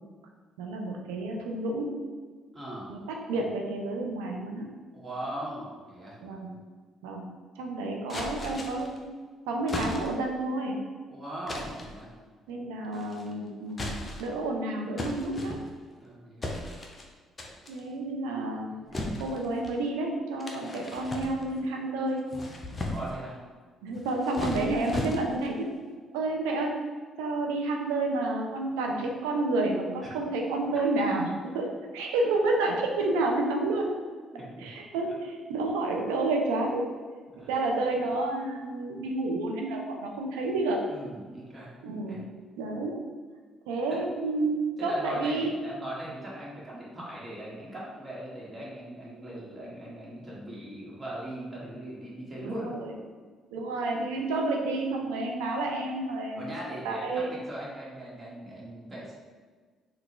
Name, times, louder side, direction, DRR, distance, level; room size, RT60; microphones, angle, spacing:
voice 1, 0.6-1.9 2.9-4.7 6.2-6.5 7.0-7.2 7.6-9.0 9.5-10.8 12.5-15.6 17.7-18.8 19.2-22.3 23.8-25.7 26.1-26.7 27.2-31.3 31.5-31.7 31.9-33.9 34.6-36.8 37.5-40.8 41.8-42.3 42.6-43.0 43.7-45.5 52.4-52.9 53.5-56.5 56.8-57.3, right 2 dB, 80° right, 1 dB, 0.4 m, -30 dB
voice 2, 2.5-2.9 4.9-6.2 11.1-12.1 16.0-16.5 18.7-18.9 22.9-23.4 34.3-34.7 37.3-37.5 40.9-41.7 42.1-42.2 43.9-44.0 44.8-52.8 56.3-59.1, right 1 dB, 30° right, -6 dB, 1.3 m, -39 dB
sound 1, 8.1-9.0 9.7-10.3 11.5-12.0 12.9-13.3 13.7-14.4 15.0-15.9 16.4-17.1 17.4-17.8 18.9-19.8 20.4-21.7 22.1-23.2 24.0-25.5, left 1 dB, 30° left, 0.6 m, -36 dB
3.7 x 2.3 x 3.0 m, 1.5 s
hypercardioid pair, 50°, 0 cm